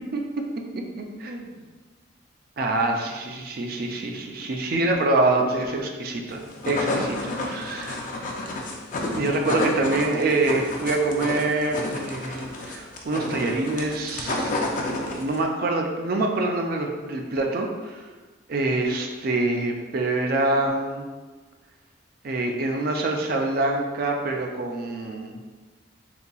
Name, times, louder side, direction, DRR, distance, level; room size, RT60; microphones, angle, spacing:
voice 1, 0.1-0.4 0.8-1.5 2.6-8.0 9.2-14.5 14.9-18.0 18.5-21.1 22.2-25.4, right 2 dB, 50° right, 2 dB, 0.4 m, -25 dB
sound 1, 6.3-15.4, left 2 dB, 40° left, 0.4 m, -30 dB
4.0 x 2.8 x 2.3 m, 1.3 s
head